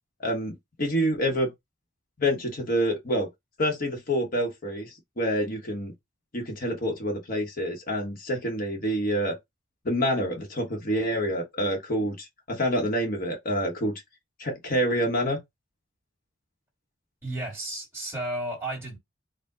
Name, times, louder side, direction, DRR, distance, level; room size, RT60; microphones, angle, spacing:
voice 1, 0.2-1.5 2.2-3.3 3.6-5.9 6.3-9.4 9.8-14.0 14.4-15.4, equal, 45° left, 1.0 m, -27 dB
voice 2, 17.2-19.0, right 1 dB, 10° right, 2.0 m, -33 dB
4.5 x 2.2 x 3.7 m
head